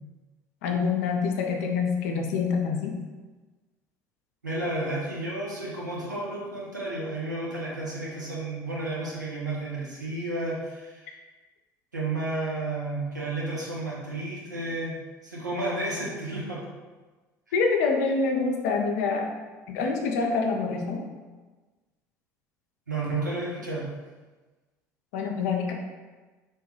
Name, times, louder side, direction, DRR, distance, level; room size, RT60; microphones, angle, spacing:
voice 1, 0.6-2.9 17.5-19.3 19.7-21.0 25.1-25.7, left 4 dB, 60° left, 2 dB, 0.4 m, -26 dB
voice 2, 4.4-11.1 11.9-15.0 15.2-16.6 22.9-23.9, right 2 dB, 85° right, -5 dB, 0.6 m, -32 dB
3.1 x 2.2 x 2.9 m, 1.3 s
figure-of-eight pair, 60°, 9 cm